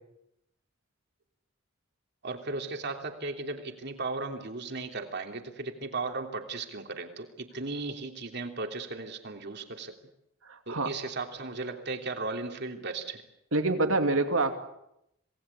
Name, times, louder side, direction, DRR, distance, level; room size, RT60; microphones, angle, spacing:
voice 1, 2.2-9.9 10.7-13.2, right 3 dB, 55° right, 4 dB, 3.1 m, -36 dB
voice 2, 10.4-10.9 13.5-14.5, right 2 dB, 90° right, 6 dB, 2.7 m, -26 dB
26.5 x 19.0 x 8.4 m, 0.82 s
head